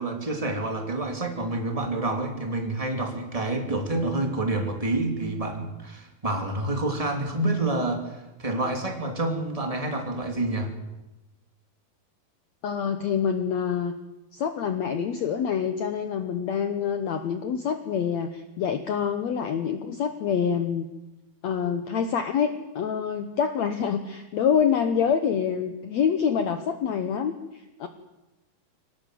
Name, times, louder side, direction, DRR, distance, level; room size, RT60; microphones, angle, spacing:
voice 1, 0.0-10.7, right 2 dB, 10° right, 3 dB, 2.2 m, -28 dB
voice 2, 12.6-13.9 14.3-20.9 21.4-27.9, left 7 dB, 75° left, 8 dB, 1.6 m, -26 dB
23.5 x 18.0 x 7.6 m, 1.0 s
omnidirectional pair, 4.4 m